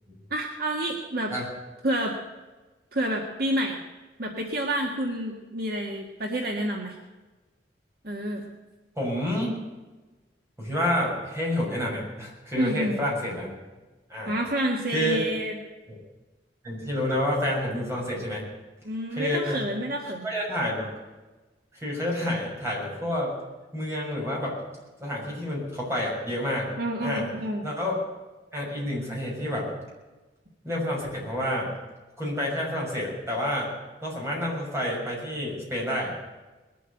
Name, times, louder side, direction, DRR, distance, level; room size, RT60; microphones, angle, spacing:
voice 1, 0.3-1.3 1.8-2.2 2.9-3.8 4.2-7.0 8.0-8.4 12.6-13.0 14.3-15.6 18.8-20.3 26.8-27.7, right 1 dB, 55° right, 1 dB, 1.8 m, -29 dB
voice 2, 9.0-9.5 10.6-13.5 14.1-14.3 14.9-15.2 15.9-16.0 16.6-18.4 19.1-19.6 20.2-20.9 21.7-23.3 23.7-24.6 25.0-26.7 27.0-27.2 27.6-28.0 28.5-29.7 30.6-31.7 32.2-33.7 34.0-36.1, left 1 dB, 15° right, -4 dB, 6.4 m, -29 dB
21.0 x 8.5 x 8.1 m, 1.2 s
head